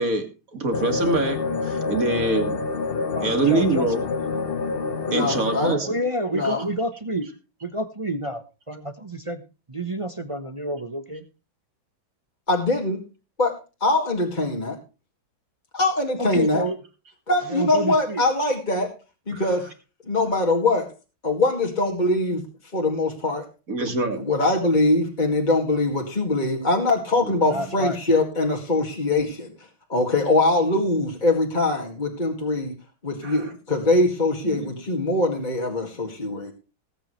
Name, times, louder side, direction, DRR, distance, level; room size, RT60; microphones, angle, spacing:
voice 1, 0.0-2.6 3.2-4.0 5.1-6.0 19.3-19.4 23.7-24.2 27.2-27.6 33.2-33.5 34.4-34.7, right 3 dB, 45° right, 6 dB, 2.8 m, -25 dB
sound 1, 0.7-5.7, left 4 dB, 40° left, 0.8 m, -27 dB
voice 2, 3.1-3.9 5.8-7.3 7.6-9.4 9.7-11.2 16.2-16.8 17.5-18.2 27.5-28.0, right 1 dB, 25° right, 9 dB, 0.8 m, -29 dB
voice 3, 5.1-5.8 6.3-6.6 12.5-13.0 13.4-13.5 13.8-14.8 15.7-16.7 17.3-18.9 19.3-19.7 20.0-20.9 21.2-22.4 22.7-23.4 24.3-29.5 29.9-32.7 33.0-36.5, left 2 dB, 25° left, 1 dB, 2.2 m, -22 dB
19.5 x 9.1 x 3.2 m, 0.32 s
omnidirectional pair, 2.1 m